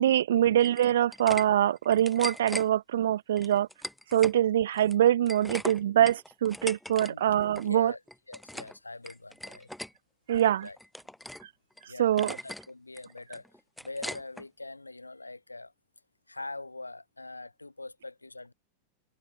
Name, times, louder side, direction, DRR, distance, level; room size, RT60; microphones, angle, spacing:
voice 1, 0.0-3.7 4.1-7.9 10.3-10.7 12.0-12.4, right 11 dB, 60° right, 0.4 m, -24 dB
sound 1, 0.6-1.4 1.8-2.7 3.4-4.4 4.7-7.1 7.4-7.7 8.1-8.8 9.0-9.9 10.4-11.5 11.8-11.9 12.2-12.7 13.0-14.4, left 1 dB, ahead, 1.7 m, -39 dB
voice 2, 6.9-7.2 7.6-8.0 8.3-9.7 10.6-10.8 11.9-15.7 16.3-18.5, left 2 dB, 80° left, 2.3 m, -43 dB
figure-of-eight pair, 90°, 0 cm